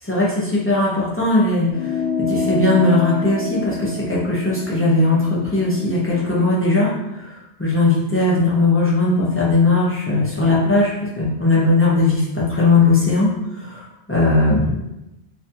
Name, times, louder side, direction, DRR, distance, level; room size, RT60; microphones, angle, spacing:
voice 1, 0.0-13.3 13.6-14.7, left 2 dB, 25° left, -7 dB, 0.3 m, -18 dB
sound 1, 1.7-6.5, left 5 dB, 65° left, 0.8 m, -28 dB
2.5 x 2.2 x 2.7 m, 0.93 s
omnidirectional pair, 1.2 m